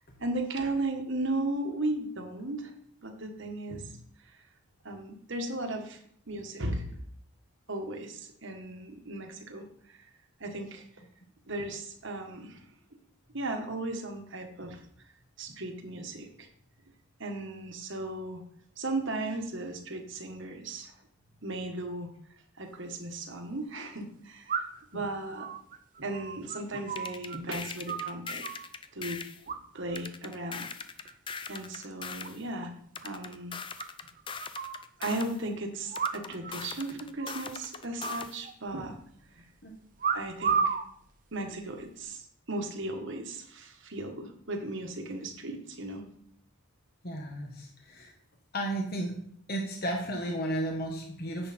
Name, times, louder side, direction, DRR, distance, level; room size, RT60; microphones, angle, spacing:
voice 1, 0.2-2.7 3.0-4.0 4.8-6.0 6.3-7.0 7.7-10.1 10.4-10.8 11.5-12.6 13.3-14.8 15.4-16.5 17.2-18.4 18.8-20.9 21.4-22.1 22.6-25.5 26.0-28.4 28.9-29.2 29.5-30.6 31.5-32.7 33.0-33.5 35.0-39.0 39.3-39.4 40.1-40.8 41.3-42.2 42.5-46.0, right 2 dB, 55° right, 4 dB, 1.5 m, -36 dB
sound 1, 22.7-22.8 24.5-24.9 25.4-27.4 27.6-28.7 29.5-30.0 30.3-30.7 31.1-31.6 31.9-32.0 32.2-32.3 32.6-32.7 33.0-33.1 33.8-34.8 35.9-36.5 36.8-36.9 37.2-37.5 38.0-38.9 40.0-40.9 41.6-42.0, right 6 dB, 35° right, 0.6 m, -33 dB
sound 2, 27.0-29.4 30.0-32.4 33.0-35.4 35.9-38.4, left 5 dB, 20° left, 0.4 m, -41 dB
voice 2, 47.0-48.1 48.5-49.2 49.5-51.5, right 1 dB, 45° left, 1 dB, 1.3 m, -33 dB
10.5 x 7.6 x 4.3 m, 0.66 s
head